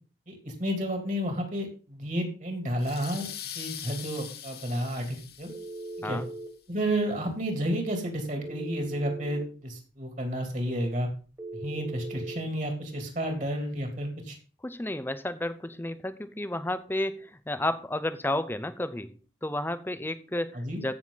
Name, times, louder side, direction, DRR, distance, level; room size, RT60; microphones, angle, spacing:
voice 1, 0.3-3.3 3.5-5.5 6.0-6.2 6.7-11.1 11.5-14.4 20.5-20.8, equal, 40° right, 3 dB, 3.0 m, -31 dB
sound 1, 2.8-6.2, left 9 dB, 55° left, 1.3 m, -42 dB
Telephone, 5.5-6.5 8.4-9.5 11.4-12.4, right 2 dB, 15° right, 2.0 m, -39 dB
voice 2, 14.6-19.1 19.4-20.9, left 1 dB, 10° left, 12 dB, 0.6 m, -32 dB
14.5 x 6.5 x 4.0 m, 0.37 s
head